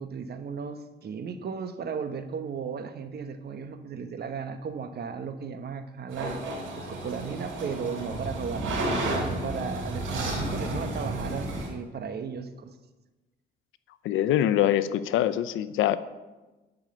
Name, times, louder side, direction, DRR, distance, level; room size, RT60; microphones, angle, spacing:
voice 1, 0.0-6.4 6.7-8.8 9.2-12.7, right 6 dB, 55° right, 9 dB, 1.1 m, -35 dB
sound 1, 6.1-11.7, right 1 dB, 85° right, 4.1 m, -32 dB
voice 2, 14.0-16.0, left 11 dB, 85° left, 14 dB, 0.6 m, -24 dB
10.5 x 6.4 x 7.7 m, 1.1 s
cardioid pair, 90°, 20 cm